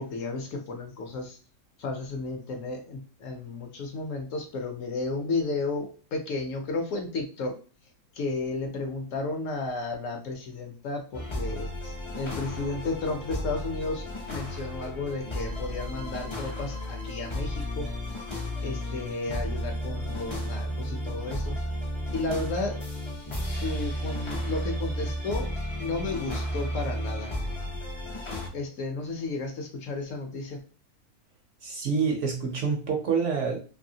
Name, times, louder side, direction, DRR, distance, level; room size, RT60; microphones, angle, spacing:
voice 1, 0.0-1.4 1.8-7.6 8.1-17.9 18.6-21.6 22.1-22.8 23.4-25.5 25.8-27.3 28.5-30.6, left 3 dB, 65° left, 3 dB, 0.9 m, -33 dB
sound 1, 11.1-28.5, equal, 45° left, 0.4 m, -33 dB
voice 2, 31.6-33.6, right 5 dB, 65° right, 1 dB, 0.8 m, -27 dB
2.7 x 2.6 x 2.6 m, 0.37 s
omnidirectional pair, 1.6 m